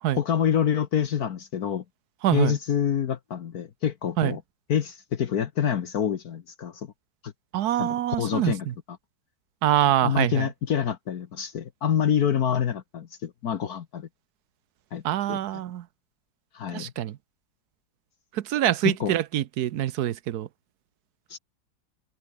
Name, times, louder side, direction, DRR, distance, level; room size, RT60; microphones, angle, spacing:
voice 1, 0.1-1.8 2.3-4.4 4.7-6.9 7.2-7.3 7.8-8.7 10.0-14.1 14.9-15.0 15.3-15.4 16.5-16.9 18.8-19.2 21.3-21.4, left 8 dB, 60° left, 1.5 m, -27 dB
voice 2, 2.2-2.6 4.2-4.4 7.5-8.7 9.6-10.5 15.0-15.8 16.7-17.2 18.3-20.5, right 12 dB, 65° right, 1.2 m, -25 dB
omnidirectional pair, 2.0 m